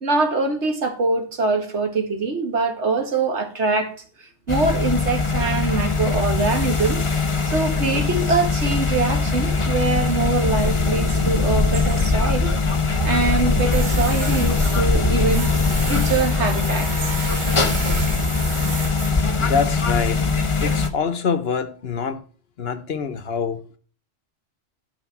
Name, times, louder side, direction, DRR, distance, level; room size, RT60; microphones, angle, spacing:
voice 1, 0.0-3.9 4.2-7.1 7.5-12.5 13.0-15.5 15.9-17.2 17.9-18.1, right 3 dB, 70° right, 2.0 m, -23 dB
sound 1, 4.5-20.9, left 4 dB, 25° left, 1.0 m, -21 dB
Tools, 13.7-20.2, right 3 dB, 45° right, 1.2 m, -33 dB
voice 2, 19.4-20.3 20.6-22.2 22.6-23.6, left 6 dB, 60° left, 1.1 m, -25 dB
12.0 x 5.3 x 5.9 m
omnidirectional pair, 1.2 m